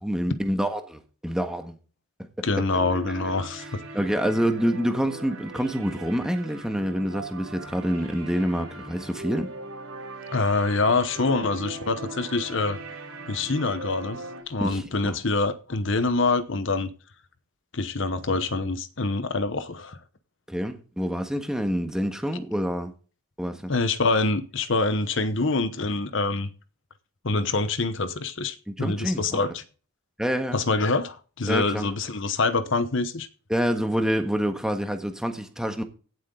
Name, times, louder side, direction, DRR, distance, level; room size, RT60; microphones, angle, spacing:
voice 1, 0.0-1.8 2.4-2.5 3.9-9.5 14.6-15.2 20.5-22.9 23.4-23.7 28.7-29.4 30.2-30.6 31.5-31.9 33.5-35.8, equal, 5° right, 1.5 m, -27 dB
voice 2, 2.4-3.8 10.3-12.8 13.3-14.2 14.5-16.9 17.7-20.0 23.7-26.5 27.2-29.6 30.5-33.3, left 3 dB, 55° left, 1.0 m, -25 dB
sound 1, 2.7-14.4, right 2 dB, 85° right, 3.6 m, -39 dB
17.0 x 7.7 x 3.9 m
head